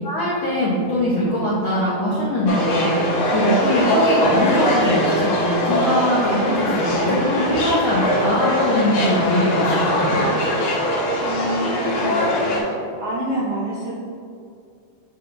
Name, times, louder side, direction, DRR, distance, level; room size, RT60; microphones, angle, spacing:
voice 1, 0.0-10.2, equal, 80° left, -7 dB, 1.1 m, -22 dB
sound 1, 2.5-12.6, left 1 dB, 55° left, 1.7 m, -21 dB
voice 2, 11.2-12.4 13.0-13.9, right 1 dB, 80° right, -6 dB, 1.3 m, -27 dB
7.0 x 6.2 x 2.6 m, 2.4 s
omnidirectional pair, 3.9 m